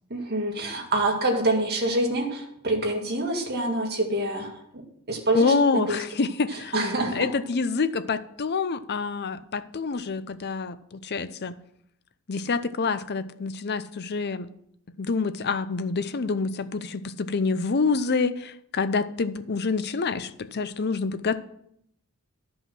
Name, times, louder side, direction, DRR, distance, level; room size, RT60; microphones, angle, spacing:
voice 1, 0.1-4.8 5.1-6.0 6.7-7.3, right 1 dB, 45° right, 1 dB, 2.1 m, -26 dB
voice 2, 5.3-6.8 7.1-11.5 12.3-14.5 15.0-21.4, left 4 dB, 45° left, 13 dB, 0.6 m, -27 dB
11.5 x 5.5 x 6.0 m, 0.73 s
head